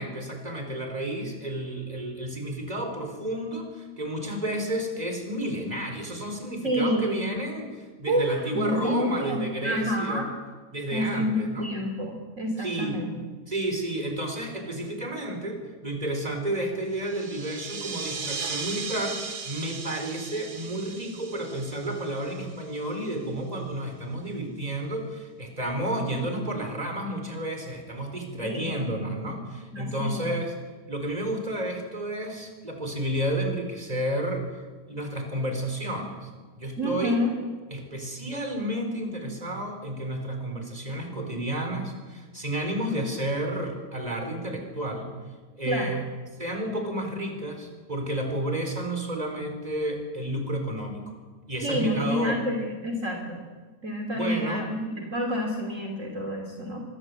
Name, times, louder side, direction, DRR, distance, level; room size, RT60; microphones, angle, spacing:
voice 1, 0.0-10.3 10.7-11.7 12.6-13.0 13.5-30.5 30.9-34.5 34.9-36.3 36.6-37.2 37.7-45.1 45.6-46.0 46.4-51.1 51.5-52.4 54.1-54.7, right 1 dB, 25° right, 4 dB, 4.7 m, -31 dB
voice 2, 6.6-7.3 8.1-10.3 10.9-13.1 28.4-28.8 29.7-30.3 36.8-37.3 45.6-46.0 51.6-53.4 53.8-56.8, equal, 50° right, 1 dB, 3.1 m, -28 dB
sound 1, 16.9-23.1, right 5 dB, 75° right, 2.6 m, -37 dB
24.5 x 23.0 x 8.1 m, 1.4 s
omnidirectional pair, 1.7 m